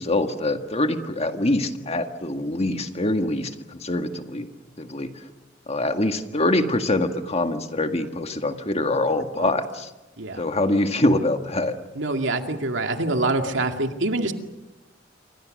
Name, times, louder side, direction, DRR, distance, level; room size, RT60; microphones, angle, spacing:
voice 1, 0.0-4.5 4.8-5.2 5.7-9.9 10.4-11.8, left 2 dB, 35° left, 6 dB, 1.8 m, -24 dB
voice 2, 12.0-14.3, right 2 dB, 80° right, 5 dB, 2.2 m, -25 dB
28.0 x 25.0 x 6.5 m, 1.0 s
head